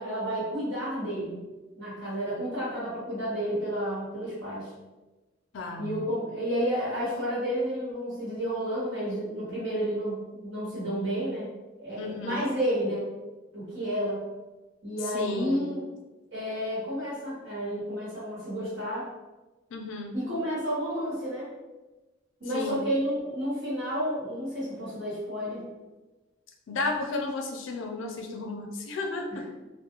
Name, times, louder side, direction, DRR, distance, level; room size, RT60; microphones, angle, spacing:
voice 1, 0.0-1.4 1.8-4.7 5.8-11.5 11.8-13.0 13.5-14.2 14.8-15.8 16.3-19.0 20.1-21.5 22.4-25.6, equal, 65° right, -9 dB, 1.2 m, -31 dB
voice 2, 5.5-6.0 12.0-12.5 15.1-15.7 19.7-20.2 22.5-22.9 26.7-29.6, left 2 dB, 85° left, 3 dB, 0.4 m, -33 dB
2.3 x 2.1 x 2.9 m, 1.1 s
head